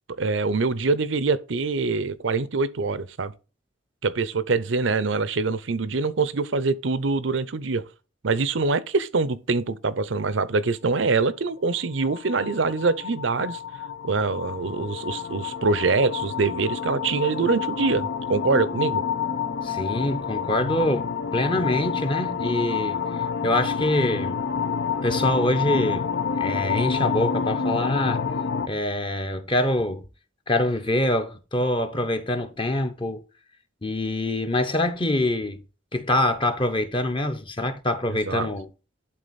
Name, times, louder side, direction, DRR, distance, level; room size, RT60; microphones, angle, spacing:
voice 1, 0.1-3.3 4.0-7.8 8.2-13.6 14.0-19.0 38.3-38.5, right 4 dB, 80° right, 0.7 m, -24 dB
sound 1, 11.7-28.7, left 6 dB, 65° left, 0.5 m, -28 dB
voice 2, 19.6-24.4 25.0-26.1 26.4-28.2 28.7-30.1 30.5-33.2 33.8-35.6 35.9-38.7, left 1 dB, 25° left, 0.8 m, -25 dB
11.0 x 3.9 x 4.1 m
head